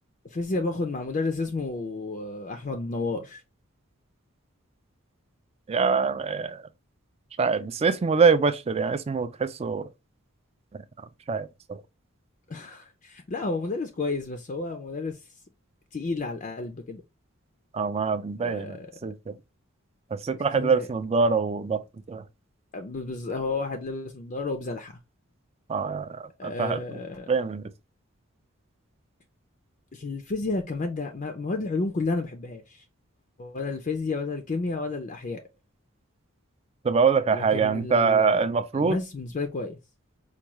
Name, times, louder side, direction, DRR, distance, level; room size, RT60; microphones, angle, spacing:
voice 1, 0.2-3.4 12.5-15.2 15.9-17.0 18.4-18.9 20.3-20.9 22.7-24.9 26.4-27.3 29.9-32.8 33.4-35.4 37.3-38.4 38.7-39.8, left 3 dB, 35° left, 0.4 m, -31 dB
voice 2, 5.7-6.6 7.4-9.9 10.7-10.8 11.3-11.8 17.7-18.8 19.0-19.4 20.1-21.8 22.1-22.2 25.7-27.0 27.3-27.6 36.8-39.0, right 5 dB, 30° right, 0.3 m, -24 dB
4.6 x 2.3 x 3.0 m
head